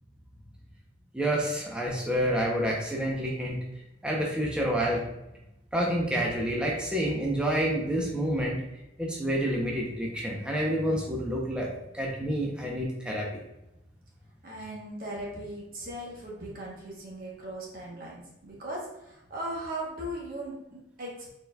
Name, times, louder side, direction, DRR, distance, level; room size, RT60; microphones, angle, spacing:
voice 1, 1.1-3.6 4.0-5.0 5.7-8.6 9.0-11.7 11.9-13.3, equal, 5° right, -3 dB, 0.6 m, -28 dB
voice 2, 14.4-21.3, right 1 dB, 50° right, -3 dB, 0.9 m, -38 dB
4.3 x 4.0 x 2.2 m, 0.91 s
head